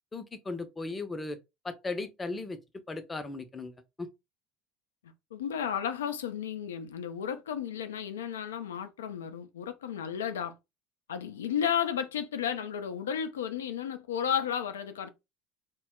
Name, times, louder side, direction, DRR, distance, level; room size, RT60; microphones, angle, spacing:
voice 1, 0.1-1.4 1.6-2.6 2.9-4.1, left 3 dB, 20° left, 0.6 m, -37 dB
voice 2, 5.3-10.6 11.1-15.1, left 8 dB, 85° left, 0.4 m, -33 dB
2.2 x 2.0 x 3.6 m
hypercardioid pair, 70°, 0 cm